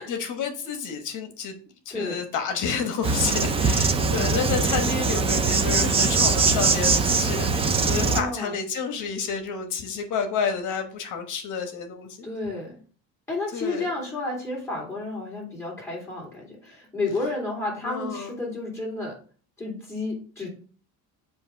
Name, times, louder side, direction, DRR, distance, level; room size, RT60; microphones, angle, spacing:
voice 1, 0.1-1.6 1.9-12.3 13.5-13.9 17.8-18.3, left 6 dB, 50° left, 6 dB, 1.1 m, -30 dB
Insect, 3.0-8.2, right 4 dB, 15° right, 0.4 m, -22 dB
voice 2, 8.0-8.5 12.2-12.7 13.3-19.1 19.6-20.5, left 2 dB, 5° left, -3 dB, 2.7 m, -31 dB
7.7 x 2.7 x 5.7 m, 0.42 s
cardioid pair, 160°, 38 cm